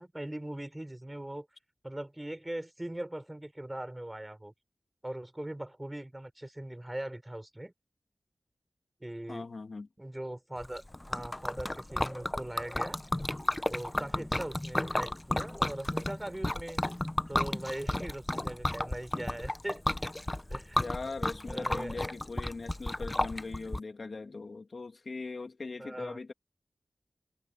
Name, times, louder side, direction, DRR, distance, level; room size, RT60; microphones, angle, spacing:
voice 1, 0.0-1.5 1.8-4.5 5.0-7.7 9.0-9.5 10.0-10.8 11.1-13.0 13.7-16.8 17.3-19.8 20.5-20.8 21.5-22.0 25.8-26.2, right 1 dB, 20° right, 5.3 m, -40 dB
voice 2, 9.3-9.9 20.8-26.3, left 3 dB, 70° left, 2.3 m, -40 dB
Liquid, 10.6-23.8, left 1 dB, 25° left, 0.5 m, -33 dB
cardioid pair, 45°, 0 cm